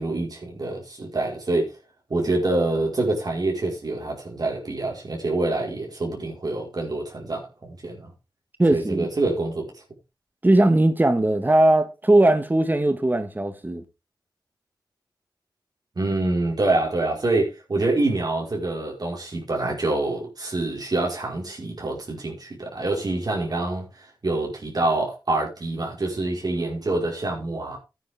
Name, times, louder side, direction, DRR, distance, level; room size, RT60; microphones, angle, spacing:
voice 1, 0.0-1.7 2.1-8.1 8.7-9.7 16.0-27.8, right 2 dB, 60° right, 5.1 m, -26 dB
voice 2, 8.6-9.1 10.4-13.8, right 1 dB, 25° right, 1.6 m, -19 dB
13.0 x 9.7 x 3.7 m
cardioid pair, 55°, 8 cm